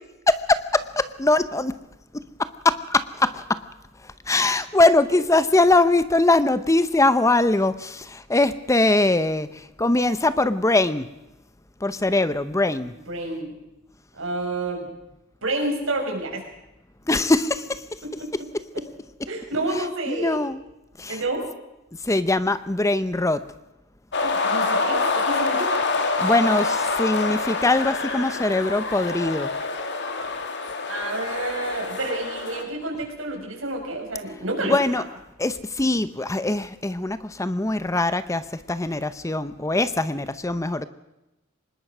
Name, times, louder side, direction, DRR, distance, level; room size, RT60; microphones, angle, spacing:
voice 1, 0.3-1.7 2.6-3.6 4.3-9.5 9.8-11.1 11.8-12.9 17.1-17.8 20.1-20.6 21.0-21.2 22.0-23.4 26.2-29.5 34.7-35.0 35.4-38.4 38.7-40.9, left 2 dB, 15° left, 13 dB, 0.7 m, -21 dB
voice 2, 12.9-13.5 14.1-14.9 15.4-16.4 18.2-18.3 19.3-20.4 21.1-21.5 24.2-25.8 30.9-35.0, right 2 dB, 70° right, 2 dB, 6.3 m, -29 dB
sound 1, 24.1-32.6, left 3 dB, 60° left, 2.5 m, -26 dB
25.0 x 20.0 x 6.1 m, 0.95 s
head